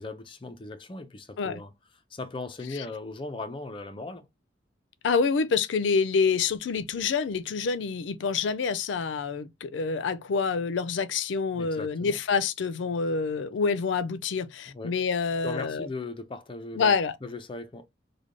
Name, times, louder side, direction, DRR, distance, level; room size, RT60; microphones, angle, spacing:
voice 1, 0.0-1.7 2.1-4.3 11.5-12.2 14.7-15.0 15.4-17.0 17.2-17.9, left 3 dB, 30° left, 0.5 m, -38 dB
voice 2, 5.0-15.9 16.8-17.2, left 5 dB, 85° left, 0.4 m, -27 dB
3.3 x 2.2 x 3.7 m
head